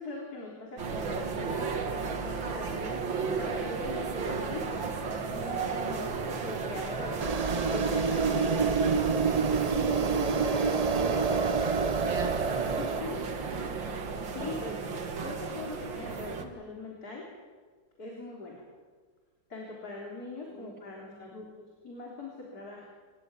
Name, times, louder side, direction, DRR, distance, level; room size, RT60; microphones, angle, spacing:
voice 1, 0.0-4.9 5.4-6.1 6.4-7.3 7.7-9.3 9.7-11.2 12.8-13.2 14.3-14.8 15.2-17.3 18.0-18.7 19.5-22.9, left 3 dB, 55° left, -2 dB, 4.3 m, -41 dB
sound 1, 0.8-16.5, right 5 dB, 90° right, 2.6 m, -34 dB
sound 2, 5.9-14.0, equal, 5° left, 2.3 m, -51 dB
sound 3, 7.2-13.0, right 5 dB, 55° right, 0.4 m, -27 dB
voice 2, 10.1-13.2 20.5-21.4, equal, 20° right, -1 dB, 4.7 m, -46 dB
27.5 x 14.5 x 9.9 m, 1.5 s
omnidirectional pair, 2.0 m